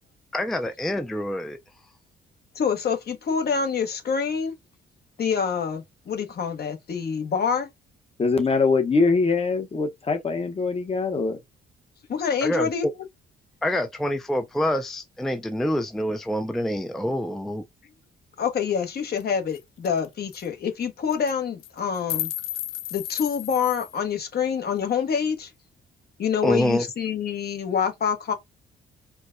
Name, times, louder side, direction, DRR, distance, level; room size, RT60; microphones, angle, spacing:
voice 1, 0.3-1.6 12.4-12.7 13.6-17.6 26.4-26.8, equal, ahead, 0.4 m, -26 dB
voice 2, 2.5-4.5 5.2-7.7 12.1-12.9 18.4-22.3 22.9-25.5 26.2-28.3, left 6 dB, 55° left, 1.0 m, -26 dB
voice 3, 8.2-11.4, left 4 dB, 30° left, 0.9 m, -23 dB
sound 1, 19.2-19.3 19.5-19.6 19.8-20.1 20.3-20.5 21.1-21.3 21.6-23.9, left 13 dB, 90° left, 0.4 m, -33 dB
4.5 x 2.1 x 2.5 m
cardioid pair, 90°, 20 cm